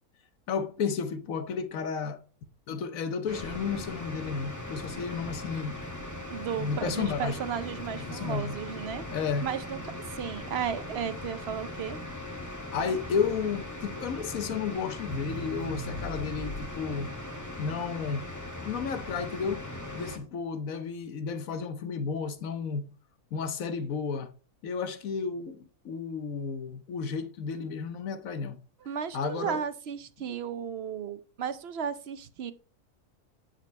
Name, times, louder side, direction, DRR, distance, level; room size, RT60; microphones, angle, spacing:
voice 1, 0.5-2.2 2.7-5.8 6.5-7.4 8.0-8.6 9.1-9.5 12.7-17.1 17.6-18.3 18.6-19.6 19.9-22.9 23.3-24.3 24.6-28.6 29.1-29.6, left 6 dB, 65° left, 1.3 m, -32 dB
sound 1, 3.3-20.2, left 1 dB, 10° left, 1.6 m, -39 dB
Crackle, 3.4-17.0, equal, 30° left, 2.8 m, -44 dB
voice 2, 6.3-9.0 9.4-9.8 10.1-12.0 28.8-32.5, right 8 dB, 60° right, 0.7 m, -34 dB
9.7 x 4.5 x 5.2 m
omnidirectional pair, 1.6 m